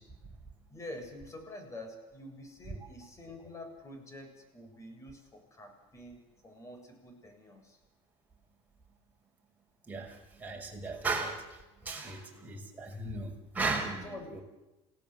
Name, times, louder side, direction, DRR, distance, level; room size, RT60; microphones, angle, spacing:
voice 1, 0.7-7.8 14.0-14.4, left 1 dB, 25° left, 4 dB, 7.5 m, -47 dB
voice 2, 9.9-14.4, right 3 dB, 15° right, 0 dB, 5.8 m, -36 dB
28.5 x 17.5 x 7.9 m, 1.0 s
supercardioid pair, 115°, 12 cm